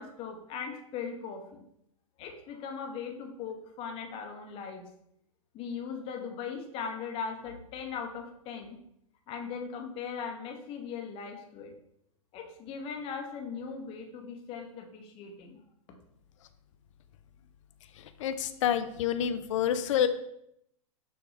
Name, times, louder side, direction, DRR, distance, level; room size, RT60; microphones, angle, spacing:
voice 1, 0.0-1.6 2.2-4.8 5.5-8.8 9.3-11.7 12.3-15.6, left 6 dB, 30° left, 3 dB, 0.7 m, -39 dB
voice 2, 18.2-20.1, left 9 dB, 60° left, 10 dB, 0.4 m, -28 dB
6.2 x 2.3 x 3.0 m, 0.76 s
hypercardioid pair, 115°, 18 cm